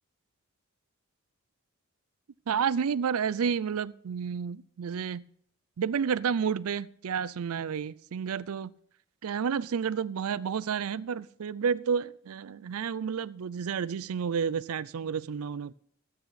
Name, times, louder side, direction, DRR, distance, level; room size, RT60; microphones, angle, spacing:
voice 1, 2.5-5.2 5.8-8.7 9.2-15.7, right 7 dB, 75° right, 0.4 m, -30 dB
13.5 x 9.0 x 4.0 m
head